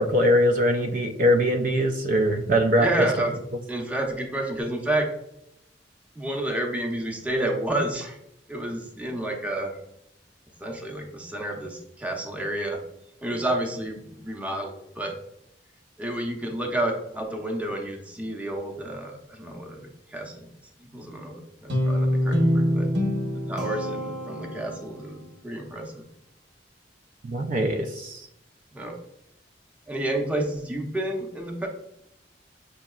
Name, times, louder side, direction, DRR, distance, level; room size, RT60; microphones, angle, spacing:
voice 1, 0.0-2.9 27.3-28.2, equal, 50° right, 5 dB, 0.4 m, -22 dB
voice 2, 2.8-3.4 3.7-5.1 6.2-8.2 8.5-9.8 10.6-12.8 13.2-15.1 16.0-19.8 20.1-20.5 20.8-22.9 23.3-26.0 28.7-29.0 29.9-31.7, right 1 dB, 10° right, 1 dB, 0.7 m, -30 dB
Guitar, 21.7-25.0, equal, 75° right, 0.9 m, -25 dB
6.3 x 2.8 x 2.3 m, 0.80 s
head